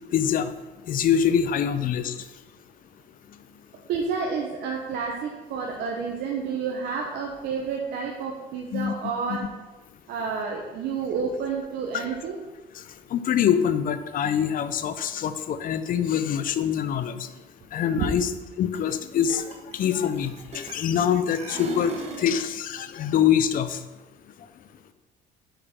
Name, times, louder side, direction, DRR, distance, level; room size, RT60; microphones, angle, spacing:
voice 1, 0.1-0.5 0.9-2.1 8.7-8.9 9.3-9.4 13.1-17.1 17.7-18.3 18.6-19.4 19.8-21.9 22.2-23.8, left 8 dB, 55° left, 11 dB, 0.5 m, -24 dB
voice 2, 3.9-9.5 10.1-12.4 17.9-18.1, right 5 dB, 70° right, 0 dB, 0.9 m, -30 dB
sound 1, 18.7-18.9 19.2-21.0 21.3-22.4, right 2 dB, 40° right, 1.3 m, -38 dB
8.1 x 5.7 x 3.6 m, 1.2 s
cardioid pair, 110°, 17 cm